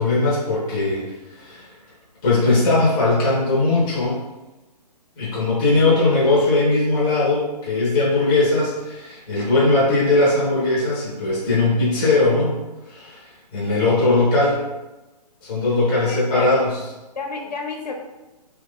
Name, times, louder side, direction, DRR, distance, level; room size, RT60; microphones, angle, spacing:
voice 1, 0.0-1.7 2.2-4.2 5.2-12.5 12.9-13.2 13.5-14.6 15.4-16.8, left 2 dB, 10° left, -7 dB, 0.6 m, -19 dB
voice 2, 16.0-16.6 17.2-18.0, left 3 dB, 85° left, 2 dB, 0.7 m, -30 dB
2.9 x 2.4 x 3.5 m, 1.1 s
hypercardioid pair, 170°, 21 cm